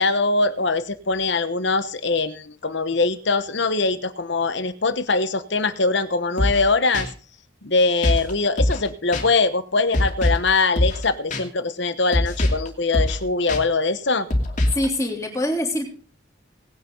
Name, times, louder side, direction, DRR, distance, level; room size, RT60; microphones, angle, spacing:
voice 1, 0.0-7.1 7.6-14.3, left 3 dB, 60° left, 12 dB, 1.1 m, -22 dB
sound 1, 6.4-6.7 6.9-7.1 8.0-8.3 8.6-8.9 9.1-9.2 9.9-10.5 10.8-11.0 11.3-11.4 12.1-12.7 12.9-13.2 13.5-13.6 14.3-14.9, left 1 dB, 40° left, 2.6 m, -22 dB
voice 2, 14.7-15.9, left 1 dB, 15° left, 1 dB, 3.2 m, -24 dB
19.0 x 9.6 x 3.9 m, 0.39 s
head